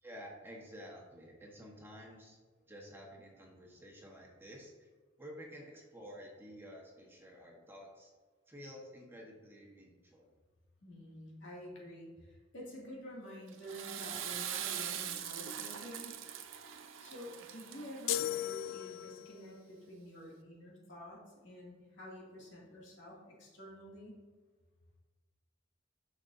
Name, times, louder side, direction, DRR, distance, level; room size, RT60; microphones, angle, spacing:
voice 1, 0.0-2.4 2.7-4.9 5.2-8.1 8.5-10.3, equal, 10° right, -2 dB, 1.3 m, -51 dB
voice 2, 10.8-16.2 17.0-24.2, equal, 70° left, -4 dB, 2.5 m, -49 dB
Water / Toilet flush, 13.5-18.7, right 9 dB, 80° right, 0.6 m, -42 dB
sound 1, 18.1-19.4, left 13 dB, 85° left, 0.3 m, -36 dB
10.5 x 6.2 x 2.7 m, 1.3 s
head